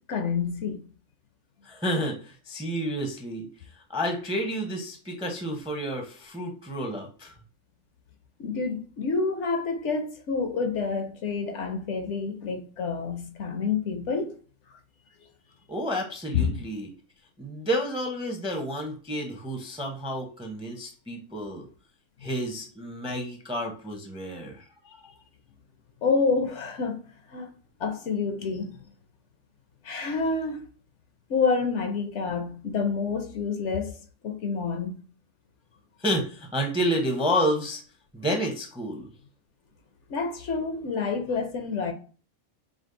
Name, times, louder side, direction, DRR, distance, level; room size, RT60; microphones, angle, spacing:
voice 1, 0.1-0.8 8.4-14.3 16.3-16.6 24.9-25.0 26.0-27.0 27.3-27.5 27.8-28.8 29.8-30.7 31.3-33.9 34.2-35.0 40.1-41.9, left 4 dB, 65° left, 0.9 m, -28 dB
voice 2, 1.7-3.5 3.9-7.3 15.7-16.9 17.4-21.6 22.2-24.6 36.0-37.8 38.1-39.1, equal, 5° right, 0.5 m, -30 dB
5.1 x 2.0 x 3.8 m
omnidirectional pair, 1.4 m